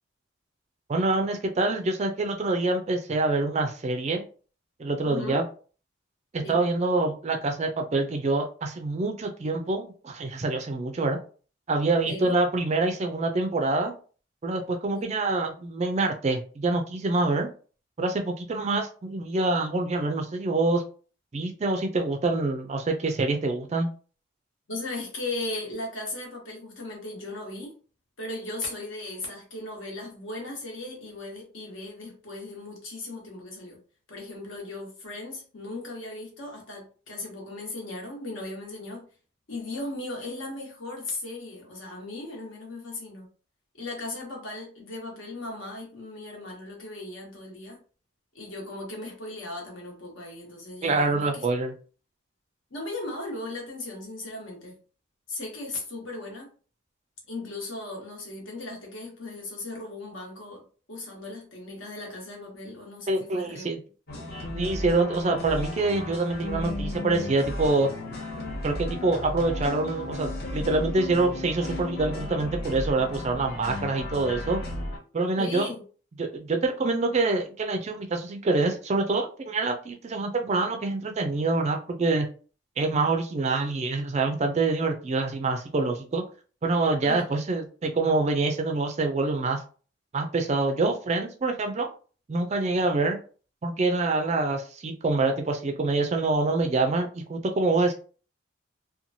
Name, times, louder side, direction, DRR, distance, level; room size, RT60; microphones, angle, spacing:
voice 1, 0.9-4.2 4.8-5.4 6.3-11.2 11.7-13.9 14.4-17.5 18.0-20.8 21.3-23.9 50.8-51.7 63.1-63.8 64.5-67.9 68.6-74.6 75.1-75.7 76.2-82.3 82.8-86.2 86.6-89.6 90.1-91.9 92.3-93.2 93.6-97.9, right 3 dB, 30° right, 4 dB, 0.3 m, -26 dB
voice 2, 5.0-5.4 6.4-6.6 12.0-12.3 14.9-15.1 24.7-27.7 28.2-33.8 34.1-39.1 39.5-43.3 43.7-47.8 48.3-51.5 52.7-54.8 55.3-56.5 57.3-63.7 73.8-74.0 75.4-75.8 87.0-87.3, left 2 dB, 70° left, -1 dB, 1.1 m, -37 dB
sound 1, 64.1-75.0, left 1 dB, 50° left, 0.8 m, -34 dB
2.9 x 2.2 x 2.6 m, 0.39 s
head